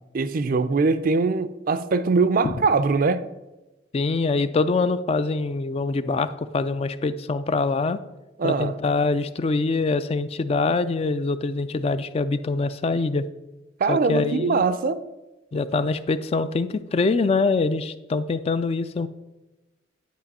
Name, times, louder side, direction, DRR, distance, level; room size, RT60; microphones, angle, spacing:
voice 1, 0.0-3.3 8.4-8.8 13.8-15.0, right 4 dB, 50° right, 0.4 m, -22 dB
voice 2, 3.9-8.0 8.4-13.3 13.9-14.6 15.5-19.1, left 3 dB, 35° left, 0.3 m, -24 dB
10.5 x 5.1 x 4.2 m
head